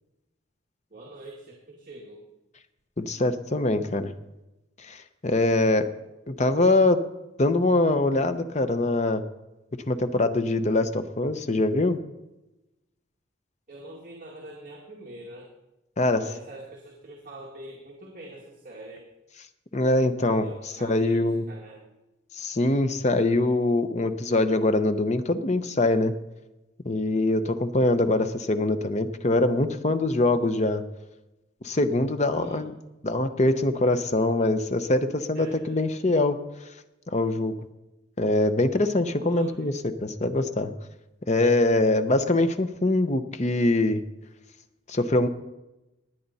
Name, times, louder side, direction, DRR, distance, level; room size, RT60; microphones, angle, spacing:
voice 1, 0.9-2.2 13.7-15.5 16.1-19.0 20.2-21.2 21.5-21.8 32.2-32.6 35.3-36.0 39.2-39.7, right 1 dB, 45° right, -3 dB, 2.1 m, -44 dB
voice 2, 3.0-4.1 4.8-5.9 6.3-7.0 7.4-9.2 9.9-12.0 16.0-16.2 19.7-20.5 20.8-21.4 22.3-26.1 26.8-30.8 31.6-32.7 33.0-36.4 37.1-37.6 38.2-40.7 41.3-44.0 44.9-45.3, left 2 dB, 35° left, 9 dB, 0.8 m, -23 dB
19.5 x 9.3 x 4.2 m, 0.98 s
head